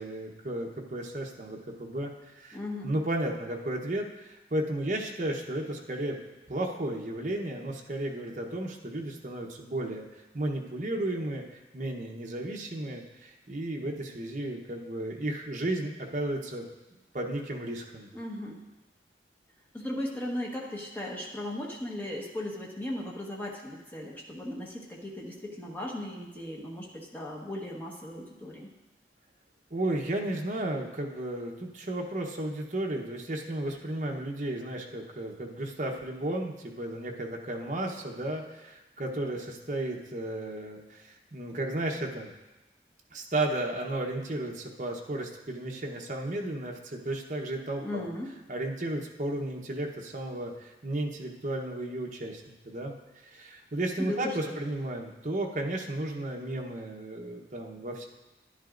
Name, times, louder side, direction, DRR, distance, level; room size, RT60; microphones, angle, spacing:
voice 1, 0.0-2.6 2.8-6.2 6.5-10.1 10.3-11.4 11.7-16.7 17.1-18.1 29.7-42.3 43.1-48.1 48.5-58.1, right 1 dB, 45° right, 1 dB, 0.9 m, -34 dB
voice 2, 2.5-2.9 18.1-18.6 19.7-28.7 47.8-48.3 54.0-54.4, left 1 dB, 10° left, -3 dB, 1.3 m, -37 dB
11.0 x 10.5 x 2.5 m, 1.1 s
head